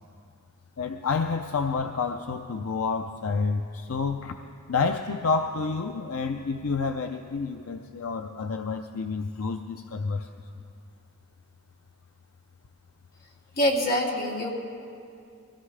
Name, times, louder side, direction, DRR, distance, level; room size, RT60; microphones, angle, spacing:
voice 1, 0.8-4.4 4.7-10.3, left 4 dB, 70° left, 5 dB, 0.5 m, -29 dB
voice 2, 13.6-14.5, left 1 dB, 45° left, -3 dB, 2.2 m, -24 dB
23.5 x 17.0 x 3.3 m, 2.4 s
head